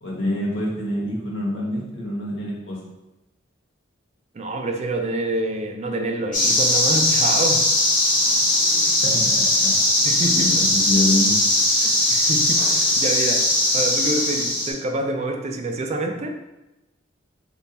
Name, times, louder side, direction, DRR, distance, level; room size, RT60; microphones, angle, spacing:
voice 1, 0.0-2.8 9.0-9.7 10.3-11.4, left 1 dB, 70° left, -4 dB, 1.3 m, -26 dB
voice 2, 4.3-7.6 10.0-10.4 11.8-13.4 13.7-16.3, right 2 dB, 35° right, 4 dB, 0.4 m, -27 dB
sound 1, 6.3-14.7, left 1 dB, 45° left, 1.5 m, -19 dB
4.1 x 3.5 x 2.9 m, 0.97 s
head